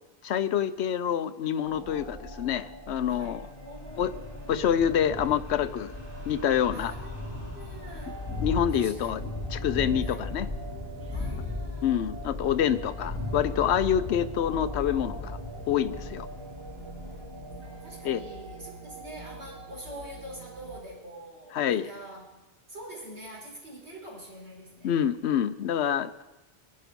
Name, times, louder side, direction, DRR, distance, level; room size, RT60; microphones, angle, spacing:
voice 1, 0.2-3.4 4.0-4.1 4.5-5.9 6.3-6.9 8.4-9.2 9.5-10.5 11.8-15.4 15.7-16.3 18.0-18.2 21.5-21.9 24.8-26.2, left 9 dB, 80° left, 12 dB, 1.0 m, -27 dB
sound 1, 1.6-20.8, left 1 dB, 25° right, 2.4 m, -41 dB
voice 2, 3.0-4.5 6.7-8.1 8.7-9.3 10.0-10.4 11.1-12.0 16.9-22.3 22.7-25.1, right 1 dB, 80° right, -6 dB, 5.5 m, -45 dB
Thunder, 3.9-17.2, left 1 dB, 5° left, 7.0 m, -38 dB
23.0 x 11.0 x 5.2 m, 1.0 s
omnidirectional pair, 1.1 m